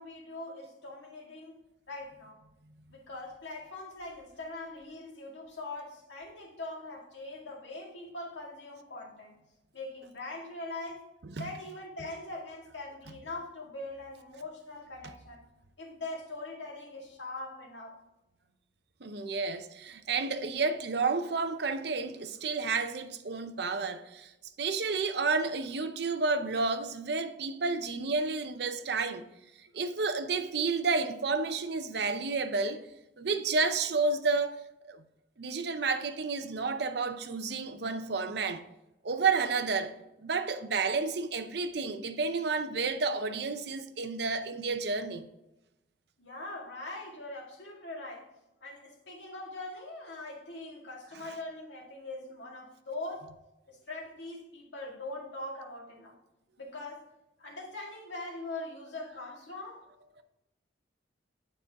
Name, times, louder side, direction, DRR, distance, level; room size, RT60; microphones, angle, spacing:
voice 1, 0.0-1.6 1.9-2.4 2.9-9.3 9.7-11.1 11.4-15.4 15.8-18.0 46.2-48.3 48.6-53.3 53.7-56.1 56.6-57.1 57.4-59.8, left 2 dB, 70° left, 2.0 m, -42 dB
voice 2, 19.0-24.3 24.6-29.2 29.7-32.8 33.2-35.0 35.4-38.6 39.0-39.9 40.2-45.3, right 4 dB, 55° right, 0.6 m, -31 dB
9.5 x 4.3 x 3.6 m
head